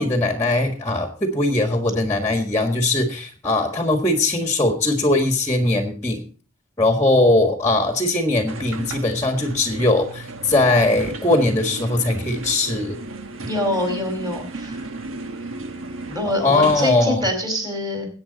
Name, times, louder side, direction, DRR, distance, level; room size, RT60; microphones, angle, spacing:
voice 1, 0.0-6.2 6.8-13.0 16.4-17.2, left 2 dB, 15° left, 4 dB, 1.6 m, -20 dB
sound 1, 8.5-17.0, right 2 dB, 80° right, 1.2 m, -35 dB
voice 2, 13.4-14.9 16.1-18.1, left 1 dB, 20° right, 3 dB, 4.8 m, -25 dB
21.0 x 9.0 x 4.0 m, 0.41 s
head